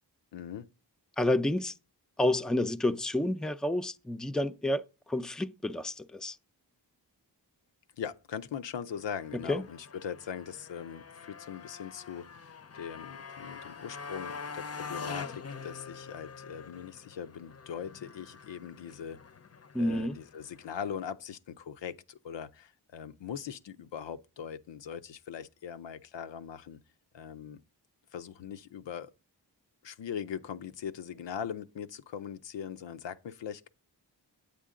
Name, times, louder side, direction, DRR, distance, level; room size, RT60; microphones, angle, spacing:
voice 1, 0.3-0.7 8.0-19.2 19.8-26.8 27.1-27.6 28.1-29.1 29.8-33.7, left 8 dB, 90° left, 0.7 m, -41 dB
voice 2, 1.2-1.7 2.2-6.4 9.5-9.6 19.7-20.2, left 1 dB, ahead, 0.5 m, -29 dB
Motorcycle, 8.9-21.0, left 5 dB, 35° left, 0.6 m, -45 dB
8.4 x 8.2 x 3.7 m
cardioid pair, 50°, 42 cm